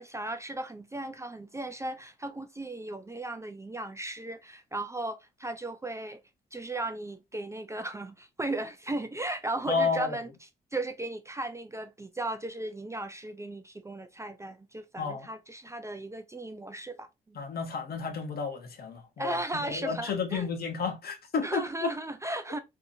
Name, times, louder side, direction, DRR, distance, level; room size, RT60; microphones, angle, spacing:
voice 1, 0.0-6.2 6.5-10.3 10.7-17.4 19.2-20.5 21.4-22.6, right 2 dB, 15° right, 0.3 m, -36 dB
voice 2, 9.7-10.2 15.0-15.3 17.3-21.9, left 5 dB, 60° left, 0.8 m, -31 dB
2.6 x 2.5 x 2.5 m
cardioid pair, 85°, 18 cm